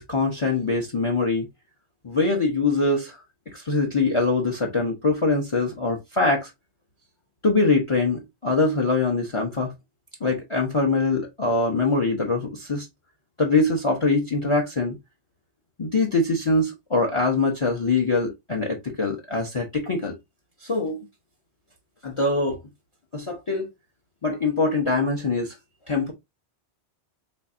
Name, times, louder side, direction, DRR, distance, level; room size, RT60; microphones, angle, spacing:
voice 1, 0.0-1.5 2.0-3.2 3.5-6.5 7.4-9.7 10.2-12.9 13.4-14.9 15.8-20.1 20.6-21.0 22.0-22.6 23.1-23.7 24.2-25.5 25.9-26.1, left 3 dB, 35° left, 0.7 m, -23 dB
4.2 x 3.2 x 2.5 m
omnidirectional pair, 1.1 m